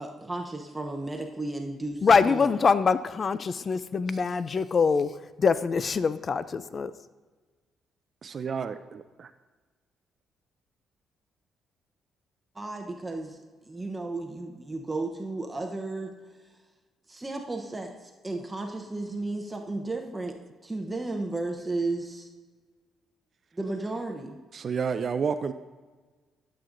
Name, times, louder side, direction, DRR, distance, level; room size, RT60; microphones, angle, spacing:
voice 1, 0.0-2.6 12.5-16.1 16.4-16.5 17.1-20.4 20.6-22.3 23.5-24.4, right 2 dB, 20° right, 3 dB, 0.8 m, -34 dB
voice 2, 2.0-5.1 5.4-6.9, left 5 dB, 40° left, 14 dB, 0.3 m, -24 dB
voice 3, 8.2-9.3 24.5-25.5, right 6 dB, 50° right, 11 dB, 0.3 m, -30 dB
12.0 x 7.5 x 2.5 m, 1.4 s
cardioid pair, 90°, 0 cm